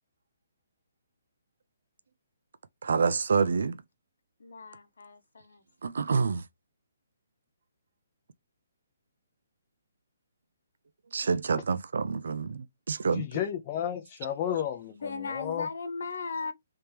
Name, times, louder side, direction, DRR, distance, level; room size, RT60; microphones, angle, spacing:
voice 1, 2.8-3.8 5.8-6.4 11.1-13.3, right 5 dB, 70° right, 0.3 m, -27 dB
voice 2, 4.4-5.6 14.9-16.5, left 4 dB, 70° left, 0.8 m, -37 dB
voice 3, 13.1-15.7, left 10 dB, 25° left, 0.4 m, -32 dB
3.3 x 2.8 x 3.3 m
hypercardioid pair, 170°, 0 cm